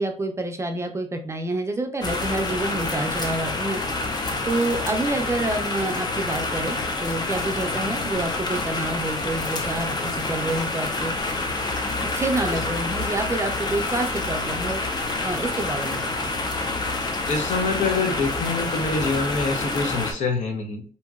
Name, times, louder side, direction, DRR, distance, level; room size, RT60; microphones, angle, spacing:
voice 1, 0.0-3.8 4.4-11.1 12.0-14.8 15.2-16.3, right 2 dB, 20° right, 5 dB, 0.4 m, -28 dB
sound 1, 2.0-20.1, left 2 dB, 35° left, 0.5 m, -27 dB
voice 2, 17.3-20.8, left 4 dB, 65° left, 4 dB, 0.7 m, -25 dB
2.8 x 2.6 x 2.4 m, 0.41 s
cardioid pair, 105°, 13 cm